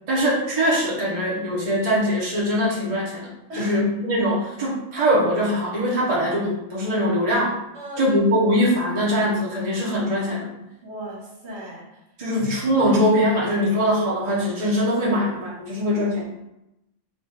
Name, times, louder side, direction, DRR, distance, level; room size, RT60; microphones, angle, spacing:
voice 1, 0.1-3.3 3.6-7.5 8.0-10.5 12.2-16.3, equal, 30° right, -6 dB, 1.0 m, -22 dB
voice 2, 7.7-8.2 10.8-11.9 15.9-16.2, equal, 60° right, -4 dB, 1.7 m, -36 dB
5.1 x 2.4 x 3.9 m, 0.88 s
omnidirectional pair, 1.3 m